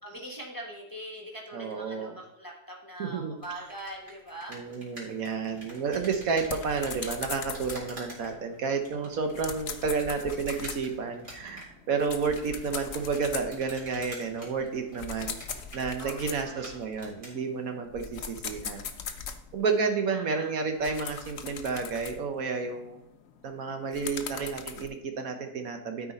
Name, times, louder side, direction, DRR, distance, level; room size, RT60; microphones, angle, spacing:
voice 1, 0.0-4.6 16.0-16.7 20.1-20.5, right 1 dB, 15° left, -1 dB, 1.3 m, -42 dB
voice 2, 1.5-2.2 3.0-3.4 4.5-15.4 15.7-18.8 19.5-23.0 23.4-26.1, right 5 dB, 65° right, 5 dB, 1.2 m, -31 dB
sound 1, 3.4-17.4, equal, 30° right, 3.1 m, -48 dB
sound 2, 5.1-16.8 17.4-19.9 20.4-24.9, left 6 dB, 55° left, 0.8 m, -41 dB
12.5 x 4.9 x 4.1 m, 0.80 s
omnidirectional pair, 1.6 m